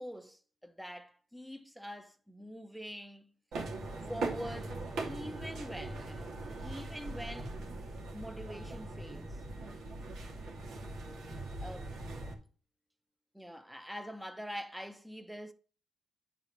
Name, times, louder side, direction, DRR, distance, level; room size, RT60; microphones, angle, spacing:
voice 1, 0.0-3.3 4.1-7.5 8.1-9.4 11.6-11.9 12.2-12.3 13.3-15.5, equal, ahead, 0.9 m, -44 dB
sound 1, 3.5-12.3, right 2 dB, 70° right, 2.6 m, -41 dB
9.6 x 4.2 x 6.7 m
cardioid pair, 90°, 0 cm